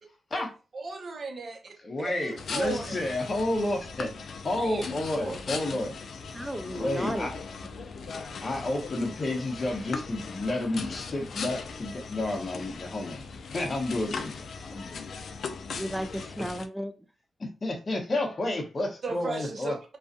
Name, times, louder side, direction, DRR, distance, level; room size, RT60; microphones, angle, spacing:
voice 1, 0.7-3.0 4.6-5.4 19.0-19.8, right 3 dB, 55° right, 0.8 m, -36 dB
voice 2, 1.8-4.1 4.4-5.9 6.8-7.3 8.4-13.3 13.5-15.1 17.4-19.7, left 2 dB, 40° left, 0.8 m, -31 dB
sound 1, 2.4-16.7, left 5 dB, 75° left, 0.3 m, -39 dB
voice 3, 6.3-7.3 9.3-9.4 15.7-16.9, equal, 5° right, 0.3 m, -34 dB
2.4 x 2.3 x 2.5 m
cardioid pair, 80°, 0 cm